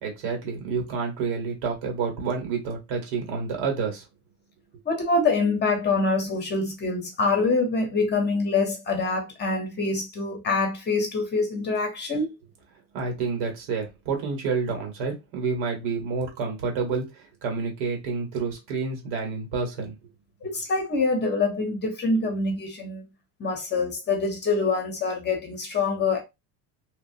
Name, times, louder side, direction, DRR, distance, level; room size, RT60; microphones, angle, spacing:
voice 1, 0.0-4.0 12.9-19.9, right 5 dB, 90° right, 1.6 m, -29 dB
voice 2, 4.8-12.4 20.4-23.1 23.4-26.2, left 3 dB, 25° left, 0.7 m, -25 dB
2.8 x 2.6 x 2.7 m
cardioid pair, 160°, 43 cm